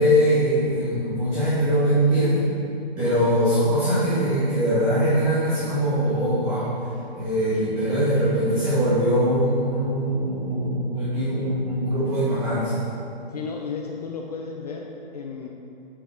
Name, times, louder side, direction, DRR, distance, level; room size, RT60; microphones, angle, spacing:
voice 1, 0.0-2.4 3.0-6.7 7.2-12.7, equal, 15° right, -12 dB, 1.9 m, -22 dB
voice 2, 13.3-15.5, left 5 dB, 40° left, 1 dB, 0.6 m, -33 dB
8.1 x 7.7 x 4.5 m, 2.7 s
hypercardioid pair, 160°, 31 cm